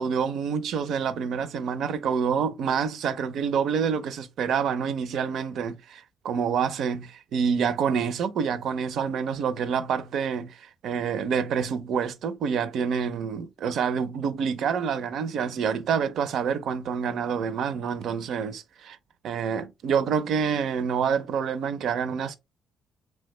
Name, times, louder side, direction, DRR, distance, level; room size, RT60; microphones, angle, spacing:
voice 1, 0.0-19.0 19.2-22.4, right 7 dB, 70° right, 0.4 m, -27 dB
3.2 x 2.1 x 3.1 m
cardioid pair, 90°, 0 cm